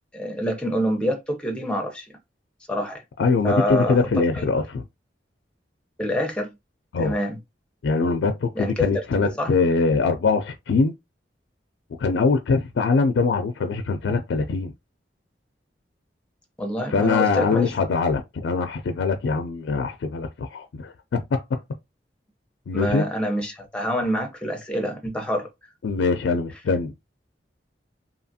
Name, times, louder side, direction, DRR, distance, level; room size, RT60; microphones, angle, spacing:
voice 1, 0.1-2.1 2.7-3.0 3.4-4.0 6.0-6.5 7.0-7.4 8.6-9.5 16.6-17.7 22.7-25.5, equal, 5° left, 0.6 m, -26 dB
voice 2, 3.2-4.8 6.9-7.1 7.8-10.9 12.0-14.7 16.9-21.4 22.7-23.1 25.8-26.9, left 4 dB, 85° left, 0.4 m, -23 dB
2.8 x 2.4 x 2.6 m
head